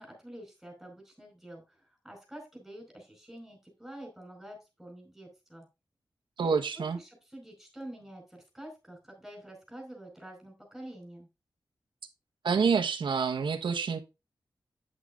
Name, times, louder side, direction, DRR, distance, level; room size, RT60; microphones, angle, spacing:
voice 1, 0.0-5.6 6.7-11.3, right 1 dB, ahead, 2 dB, 4.9 m, -47 dB
voice 2, 6.4-7.0 12.4-14.0, right 5 dB, 85° right, 6 dB, 1.1 m, -27 dB
8.9 x 8.2 x 2.5 m, 0.26 s
wide cardioid pair, 165°, 8 cm